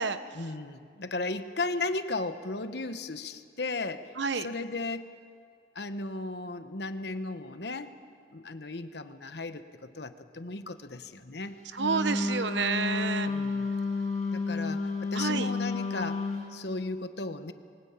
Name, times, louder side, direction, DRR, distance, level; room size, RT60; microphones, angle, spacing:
voice 1, 0.3-5.1 5.7-8.0 8.3-11.6 13.3-13.7 14.3-17.5, left 3 dB, 65° left, 10 dB, 1.1 m, -36 dB
Wind instrument woodwind instrument, 11.8-16.5, left 3 dB, 35° left, 2.8 m, -31 dB
voice 2, 11.8-13.3 15.1-15.5, right 5 dB, 75° right, 11 dB, 1.0 m, -29 dB
22.5 x 19.5 x 8.9 m, 2.2 s
head